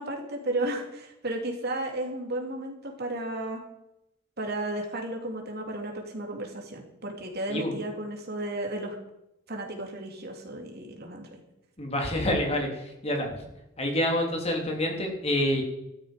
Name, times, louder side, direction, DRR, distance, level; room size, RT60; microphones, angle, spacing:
voice 1, 0.0-3.6 4.4-9.0 9.5-11.4, right 1 dB, 55° right, 2 dB, 3.0 m, -33 dB
voice 2, 11.8-13.3 13.8-15.6, left 1 dB, 35° left, 2 dB, 3.2 m, -27 dB
14.0 x 12.5 x 5.2 m, 0.87 s
head